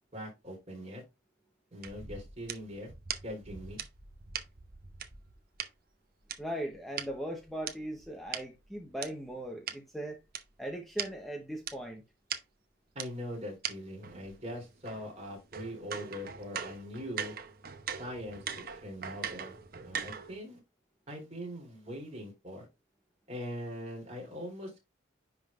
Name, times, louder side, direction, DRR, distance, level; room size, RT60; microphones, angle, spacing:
voice 1, 0.1-1.0 1.7-2.9 3.2-3.8 12.9-17.3 18.0-18.4 18.7-19.5 19.8-20.6 21.1-22.6 23.3-24.8, equal, 35° right, 3.2 m, -42 dB
sound 1, 1.8-5.7 6.3-9.1 9.7-9.8 10.3-10.4 10.7-10.8 11.0-11.1 11.7-11.8 12.3-12.4 13.0-13.1 13.6-13.7 14.0-20.4, right 7 dB, 50° right, 0.8 m, -40 dB
voice 2, 6.4-10.2 10.6-12.0, right 1 dB, ahead, 0.9 m, -39 dB
10.5 x 3.7 x 2.5 m
head